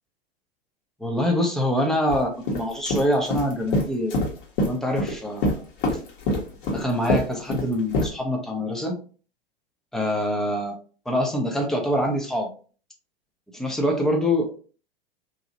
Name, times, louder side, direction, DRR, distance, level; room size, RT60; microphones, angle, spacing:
voice 1, 1.0-4.2 4.6-5.6 6.7-9.0 9.9-10.8 11.1-12.5 13.5-14.5, left 1 dB, ahead, 1 dB, 0.3 m, -25 dB
sound 1, 2.1-2.2 2.5-5.2 5.4-8.1, left 1 dB, 50° left, 1.1 m, -24 dB
2.7 x 2.5 x 2.7 m, 0.39 s
figure-of-eight pair, 95°, 31 cm